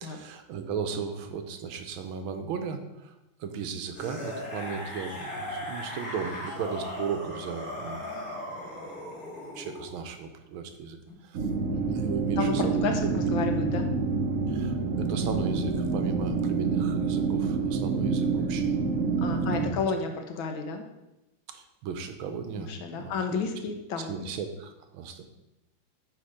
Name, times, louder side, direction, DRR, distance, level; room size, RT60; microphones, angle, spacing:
voice 1, 0.0-3.1 3.4-8.0 9.5-11.0 11.2-11.4 11.9-13.2 14.5-19.4 21.5-23.1 24.0-25.2, right 6 dB, 75° right, 7 dB, 1.5 m, -36 dB
sound 1, 3.9-9.9 11.0-11.1, left 1 dB, 25° left, 2.3 m, -38 dB
sound 2, 11.3-19.7, right 4 dB, 60° right, 0.8 m, -27 dB
voice 2, 12.4-13.9 19.2-20.8 22.6-24.3, left 5 dB, 70° left, 5 dB, 1.5 m, -32 dB
9.5 x 3.4 x 4.9 m, 0.94 s
omnidirectional pair, 2.4 m